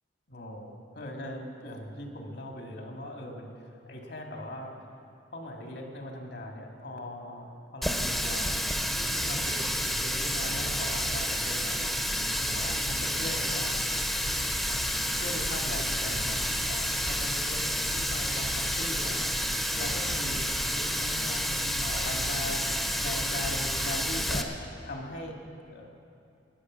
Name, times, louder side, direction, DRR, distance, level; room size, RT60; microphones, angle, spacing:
voice 1, 0.3-3.5 3.9-4.7 5.3-8.6 8.9-11.9 12.4-13.8 14.7-14.8 15.1-22.7 23.0-24.5 24.8-25.4 25.7-25.9, left 1 dB, 70° left, 1 dB, 2.1 m, -40 dB
Water tap faucet, 7.8-24.4, equal, ahead, 0.9 m, -30 dB
sound 1, 9.1-23.9, right 2 dB, 85° right, 1.0 m, -44 dB
20.5 x 8.2 x 6.3 m, 2.6 s
head